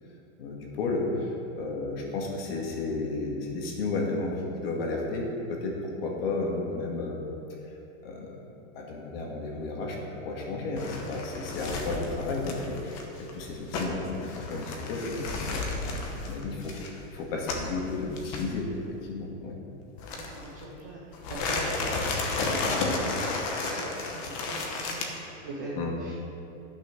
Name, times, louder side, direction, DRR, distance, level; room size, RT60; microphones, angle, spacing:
voice 1, 0.4-1.1 1.6-7.2 8.0-8.3 8.7-19.6 25.8-25.9, left 3 dB, 50° left, -1 dB, 2.1 m, -33 dB
sound 1, 10.8-17.8 18.2-18.4 20.0-20.6 21.1-25.1, left 3 dB, 25° left, 1.0 m, -32 dB
voice 2, 20.1-22.8 23.7-25.7 26.0-26.1, right 2 dB, 15° right, -5 dB, 0.4 m, -42 dB
11.5 x 6.3 x 6.1 m, 2.9 s
supercardioid pair, 180°, 38 cm